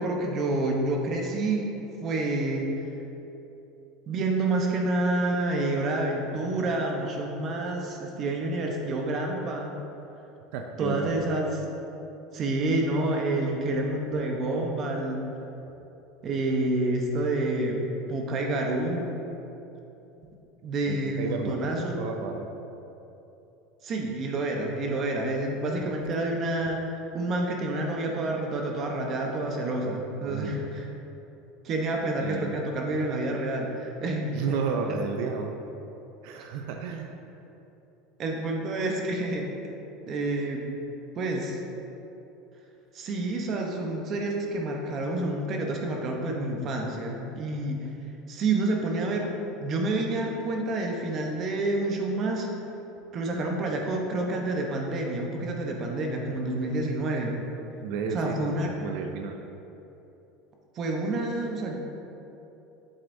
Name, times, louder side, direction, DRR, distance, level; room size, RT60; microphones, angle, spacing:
voice 1, 0.0-2.7 4.1-9.8 10.8-11.5 12.3-15.3 16.2-17.8 18.1-19.1 20.6-22.0 23.8-26.9 27.1-30.9 31.6-34.6 34.9-35.0 38.2-39.5 40.1-40.6 41.2-41.6 42.9-47.9 48.3-49.3 49.6-52.5 53.1-57.4 58.1-58.7 60.7-61.7, right 2 dB, 35° right, 1 dB, 0.9 m, -28 dB
voice 2, 10.5-11.2 20.9-22.5 30.3-30.6 32.2-32.5 34.3-35.6 36.2-37.2 57.8-59.4, right 5 dB, 65° right, 3 dB, 0.5 m, -32 dB
8.0 x 7.8 x 2.7 m, 2.9 s
supercardioid pair, 150°, 0 cm